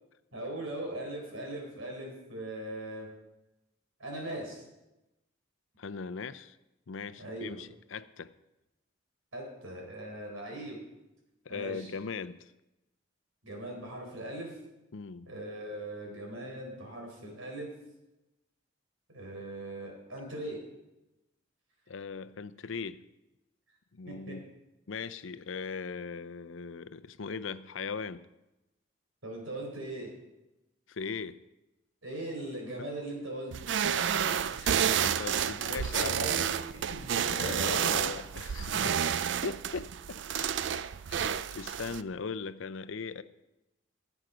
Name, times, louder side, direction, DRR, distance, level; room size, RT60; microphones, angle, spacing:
voice 1, 0.3-3.1 4.0-4.6 7.2-7.6 9.3-10.8 11.5-11.9 13.4-14.5 15.3-17.7 19.1-20.6 24.1-24.4 29.2-30.1 32.0-33.7 35.6-38.1, right 1 dB, 85° right, 0 dB, 4.2 m, -40 dB
voice 2, 5.8-6.6 6.9-8.3 11.5-12.5 14.9-15.3 21.9-23.0 23.9-24.5 24.9-28.3 30.9-31.4 33.8-34.0 34.5-36.2 37.3-40.6 41.1-43.2, left 5 dB, 75° left, 14 dB, 0.6 m, -39 dB
sound 1, 33.5-42.0, right 8 dB, 60° right, 0.4 m, -30 dB
17.5 x 8.0 x 5.1 m, 0.97 s
head